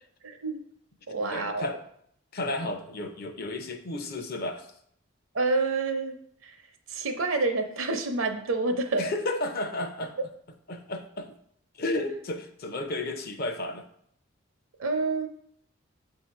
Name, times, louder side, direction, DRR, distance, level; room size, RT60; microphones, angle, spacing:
voice 1, 0.2-0.6 1.1-1.7 5.3-6.1 6.4-6.6 6.9-9.1 14.8-15.3, right 3 dB, 70° right, 6 dB, 0.7 m, -28 dB
voice 2, 1.3-1.8 2.3-4.7 9.0-10.2 10.7-11.3 11.7-13.8, left 2 dB, 45° left, 7 dB, 0.5 m, -32 dB
7.9 x 2.8 x 4.7 m, 0.69 s
head